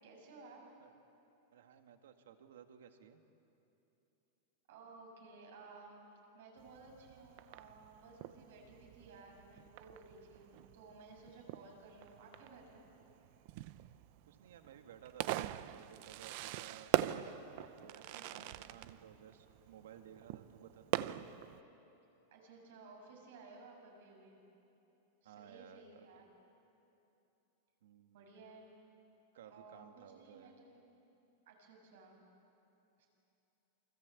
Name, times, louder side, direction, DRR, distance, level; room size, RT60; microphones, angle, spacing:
voice 1, 0.0-0.7 4.7-6.0 6.3-12.9 17.9-18.5 22.3-24.4 25.2-26.3 28.1-28.7 29.4-30.8 31.5-32.2 33.0-33.1, right 3 dB, 65° right, 1 dB, 7.4 m, -57 dB
voice 2, 1.5-3.2 9.0-9.1 11.3-11.5 14.2-16.9 17.8-20.9 25.2-26.1 27.8-28.3 29.3-30.6, right 9 dB, 85° right, 7 dB, 1.9 m, -57 dB
Fireworks, 6.6-21.6, right 15 dB, 45° right, 0.6 m, -42 dB
29.0 x 24.0 x 8.4 m, 2.9 s
supercardioid pair, 175°, 0 cm